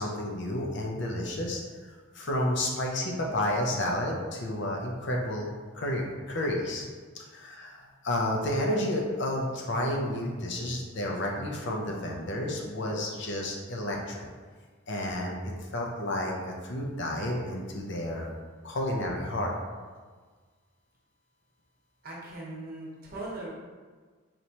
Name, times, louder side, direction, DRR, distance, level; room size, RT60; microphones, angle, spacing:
voice 1, 0.0-1.6 2.1-6.9 7.1-14.3 14.9-15.4 15.7-18.3 18.6-19.5, left 1 dB, 55° left, 0 dB, 0.6 m, -31 dB
voice 2, 22.0-23.5, right 2 dB, 45° right, -5 dB, 1.0 m, -39 dB
4.2 x 3.2 x 2.9 m, 1.5 s
head